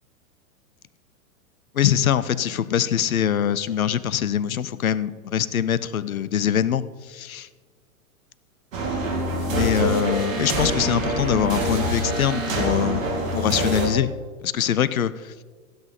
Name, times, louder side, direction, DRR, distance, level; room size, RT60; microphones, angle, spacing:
voice 1, 1.7-7.5 9.5-13.0 13.3-14.1 14.4-15.3, left 9 dB, 70° left, 17 dB, 0.8 m, -23 dB
sound 1, 8.7-13.9, right 1 dB, 60° right, 2.8 m, -25 dB
15.5 x 8.4 x 4.3 m, 1.5 s
figure-of-eight pair, 100°, 44 cm